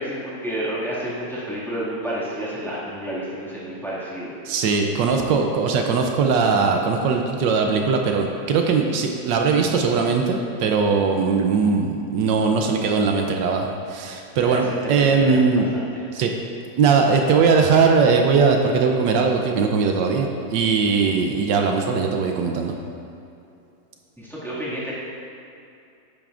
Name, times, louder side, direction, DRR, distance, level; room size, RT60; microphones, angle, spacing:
voice 1, 0.0-4.3 14.4-16.0 24.2-24.9, right 1 dB, ahead, -9 dB, 1.9 m, -30 dB
voice 2, 4.4-15.7 16.1-16.3 16.8-22.7, right 5 dB, 80° right, 2 dB, 1.3 m, -20 dB
11.0 x 8.8 x 2.5 m, 2.6 s
omnidirectional pair, 2.0 m